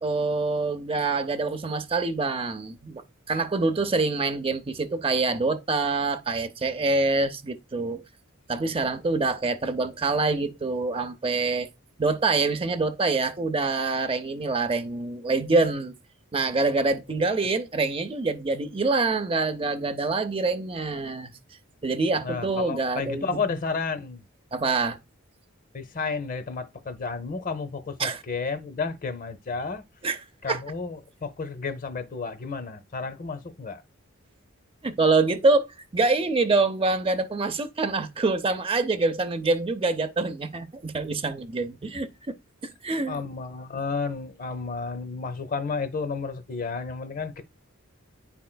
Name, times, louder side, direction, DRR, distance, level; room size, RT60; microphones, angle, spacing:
voice 1, 0.0-8.0 8.5-11.7 12.0-15.9 16.3-21.3 21.8-23.4 24.5-25.0 28.0-28.2 30.0-30.2 30.5-30.6 34.8-35.7 35.9-42.4 42.6-43.2, right 3 dB, 25° right, 0.6 m, -25 dB
voice 2, 22.2-24.2 25.7-29.8 30.4-33.8 43.1-47.4, left 4 dB, 40° left, 0.6 m, -32 dB
10.0 x 4.4 x 2.2 m
head